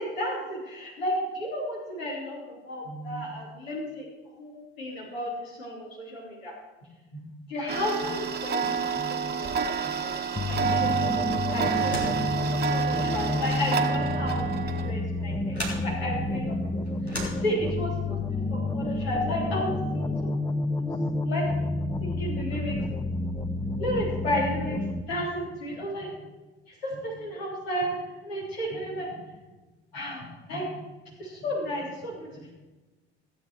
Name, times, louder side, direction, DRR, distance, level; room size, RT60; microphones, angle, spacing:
voice 1, 0.0-4.1 4.4-6.6 7.3-10.1 10.5-16.6 17.0-20.3 20.8-20.9 21.2-21.7 22.0-22.8 23.8-24.8 25.1-26.3 26.7-29.1 29.9-30.8 31.2-32.5, equal, 65° left, -3 dB, 3.5 m, -33 dB
Tick-tock, 7.7-14.9, right 6 dB, 30° right, 1.2 m, -29 dB
sound 1, 10.4-25.0, left 2 dB, 10° left, 0.8 m, -29 dB
sound 2, 11.7-18.0, equal, 90° left, 2.2 m, -39 dB
15.5 x 8.6 x 4.7 m, 1.2 s
figure-of-eight pair, 60°, 32 cm